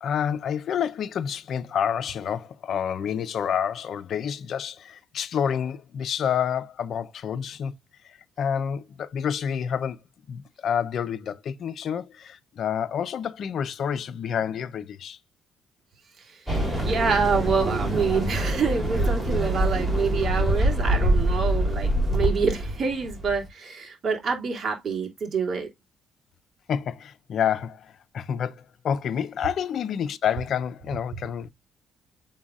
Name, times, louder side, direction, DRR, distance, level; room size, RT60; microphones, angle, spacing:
voice 1, 0.0-7.7 8.1-10.0 10.3-15.2 26.7-31.5, left 8 dB, 65° left, 0.6 m, -28 dB
sound 1, 16.5-23.5, right 1 dB, 10° right, 3.3 m, -25 dB
voice 2, 16.8-25.7, right 5 dB, 50° right, 2.8 m, -26 dB
7.1 x 5.6 x 2.4 m
cardioid pair, 90°, 0 cm